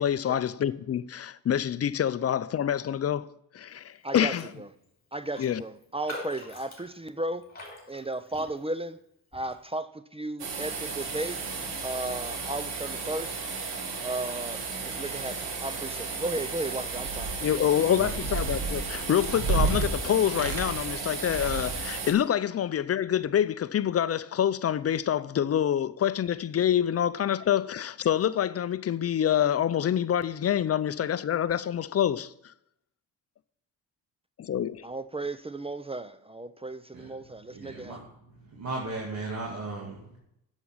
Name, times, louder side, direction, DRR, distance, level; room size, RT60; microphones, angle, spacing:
voice 1, 0.0-3.3 3.5-4.5 5.4-5.6 17.4-32.3 34.4-34.9, left 10 dB, 40° left, 0.5 m, -26 dB
voice 2, 4.0-4.7 5.1-7.4 7.9-9.0 9.3-11.4 11.8-13.4 14.0-17.6 34.8-38.0, right 2 dB, 15° right, 0.5 m, -35 dB
Raindrop, 4.2-4.5 4.8-4.9 5.3-8.9 9.3-9.6, left 1 dB, 25° left, 3.4 m, -44 dB
sound 1, 10.4-22.1, right 4 dB, 90° right, 1.9 m, -35 dB
sound 2, 16.9-17.5 17.9-19.8 20.3-20.9 21.2-21.9, right 3 dB, 65° right, 2.3 m, -30 dB
voice 3, 37.5-38.0 38.5-40.2, right 3 dB, 45° right, 2.2 m, -36 dB
8.2 x 7.3 x 5.6 m
cardioid pair, 80°, 38 cm